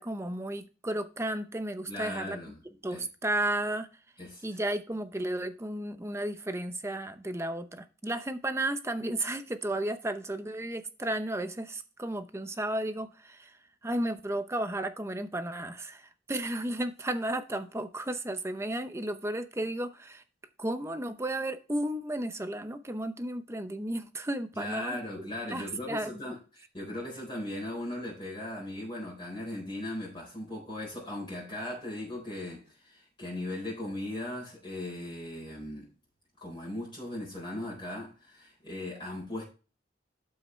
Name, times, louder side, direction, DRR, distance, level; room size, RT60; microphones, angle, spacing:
voice 1, 0.0-2.4 2.8-3.9 4.4-13.6 13.8-20.2 20.6-25.0 25.5-26.1, right 1 dB, 15° right, 0.7 m, -33 dB
voice 2, 1.9-2.6 2.9-3.0 4.2-4.4 24.5-35.9 36.4-39.4, left 1 dB, 25° left, 4.0 m, -38 dB
12.0 x 5.7 x 3.2 m
head